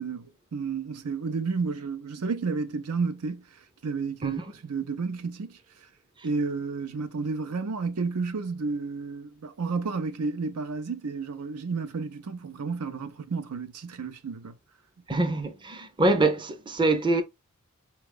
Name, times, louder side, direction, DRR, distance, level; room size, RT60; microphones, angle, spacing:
voice 1, 0.0-3.5 3.8-5.6 6.2-14.5, right 4 dB, 80° right, 0.6 m, -31 dB
voice 2, 15.1-17.2, right 2 dB, 20° right, 0.5 m, -24 dB
4.2 x 2.3 x 3.4 m
head